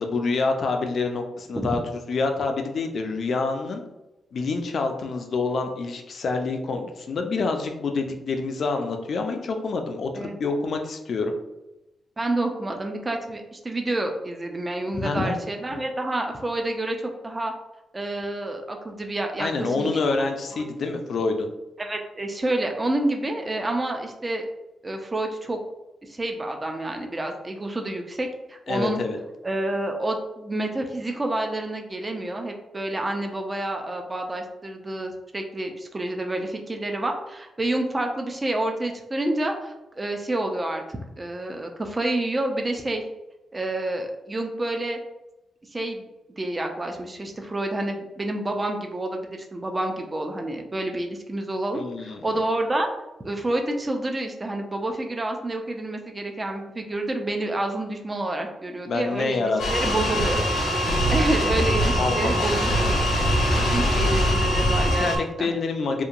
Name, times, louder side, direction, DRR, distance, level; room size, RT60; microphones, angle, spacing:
voice 1, 0.0-1.8 2.1-3.8 4.3-11.3 14.9-15.4 19.4-21.5 28.7-29.2 51.7-52.2 58.9-60.3 62.0-62.5 64.8-66.0, left 3 dB, 55° left, 4 dB, 0.4 m, -27 dB
voice 2, 12.2-17.0 17.2-17.5 17.9-20.0 20.5-20.7 21.8-24.4 24.8-25.6 26.1-29.0 29.4-43.0 43.5-45.0 45.7-46.1 46.4-52.9 53.2-60.4 61.1-63.0 63.5-65.1 65.4-65.5, right 1 dB, 20° right, 3 dB, 0.3 m, -28 dB
sound 1, 59.6-65.2, equal, 80° left, 0.7 m, -22 dB
2.8 x 2.2 x 2.4 m, 0.96 s
cardioid pair, 110°, 0 cm